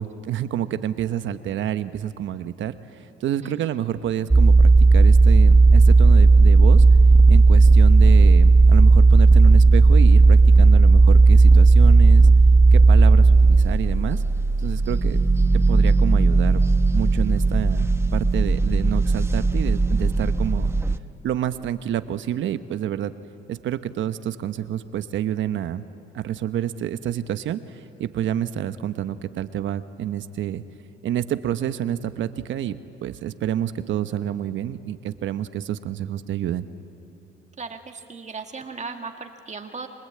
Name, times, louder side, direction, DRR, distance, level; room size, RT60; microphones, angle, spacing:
voice 1, 0.0-6.8 7.3-12.3 12.7-14.2 14.6-15.2 15.5-16.7 16.9-20.7 21.2-23.1 23.5-25.8 26.1-30.6 31.0-32.8 33.0-36.7, right 11 dB, 75° right, 11 dB, 1.0 m, -28 dB
sound 1, 4.3-21.0, right 3 dB, 10° right, 0.9 m, -14 dB
voice 2, 37.6-39.9, right 4 dB, 35° right, 5 dB, 1.7 m, -36 dB
28.5 x 23.0 x 8.6 m, 2.9 s
cardioid pair, 90°, 20 cm